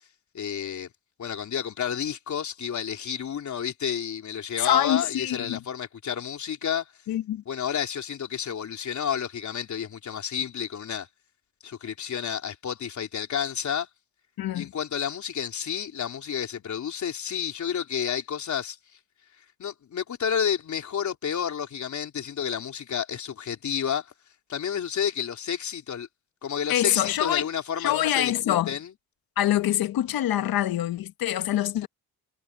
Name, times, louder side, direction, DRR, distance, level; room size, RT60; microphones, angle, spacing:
voice 1, 0.3-0.9 1.2-6.9 7.5-11.1 11.6-13.9 14.5-18.8 19.6-24.1 24.5-26.1 26.4-28.9, left 8 dB, 50° left, 3.8 m, -30 dB
voice 2, 4.6-5.6 7.1-7.4 14.4-14.7 26.7-27.5 27.8-28.7 29.4-31.9, left 12 dB, 70° left, 1.4 m, -25 dB
cardioid pair, 105°, 37 cm